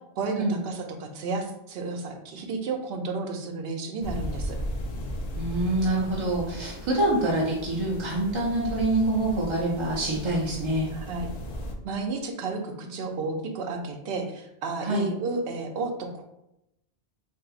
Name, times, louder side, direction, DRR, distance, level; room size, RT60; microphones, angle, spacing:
voice 1, 0.2-4.6 10.9-11.3 11.8-16.2, right 3 dB, 75° right, 4 dB, 0.8 m, -32 dB
sound 1, 4.0-11.7, equal, 55° left, 0.5 m, -36 dB
voice 2, 5.3-10.9 14.8-15.1, right 1 dB, 40° right, -4 dB, 0.4 m, -26 dB
3.8 x 2.6 x 2.4 m, 0.83 s
omnidirectional pair, 1.0 m